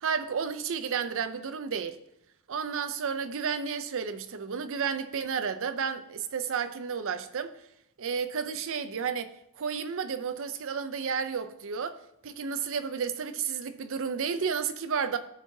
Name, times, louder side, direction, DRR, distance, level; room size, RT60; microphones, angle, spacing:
voice 1, 0.0-2.0 2.5-7.5 8.0-12.0 12.2-15.2, right 6 dB, 65° right, 0.6 m, -32 dB
13.5 x 4.6 x 2.8 m
head